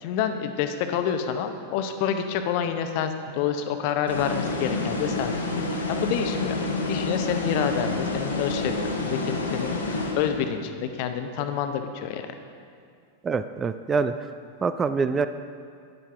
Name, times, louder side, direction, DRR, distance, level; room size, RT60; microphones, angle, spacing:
voice 1, 0.0-5.3 5.9-6.6 6.9-8.8 9.0-12.3, left 8 dB, 45° left, 8 dB, 0.7 m, -28 dB
sound 1, 4.1-10.7, left 2 dB, 70° left, 1.2 m, -28 dB
voice 2, 13.2-14.1 14.6-15.3, right 5 dB, 20° right, 11 dB, 0.3 m, -25 dB
12.0 x 9.7 x 3.5 m, 2.2 s
figure-of-eight pair, 90°, 0 cm